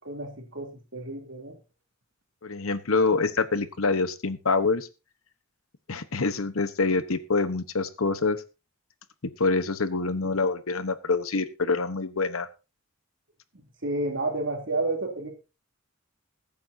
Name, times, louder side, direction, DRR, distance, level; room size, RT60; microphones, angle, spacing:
voice 1, 0.0-1.6 10.2-10.3 13.5-15.4, right 2 dB, 60° right, 2 dB, 3.2 m, -31 dB
voice 2, 2.4-4.9 5.9-8.4 9.2-12.5, left 3 dB, 85° left, 12 dB, 1.1 m, -26 dB
21.5 x 8.8 x 2.8 m, 0.30 s
head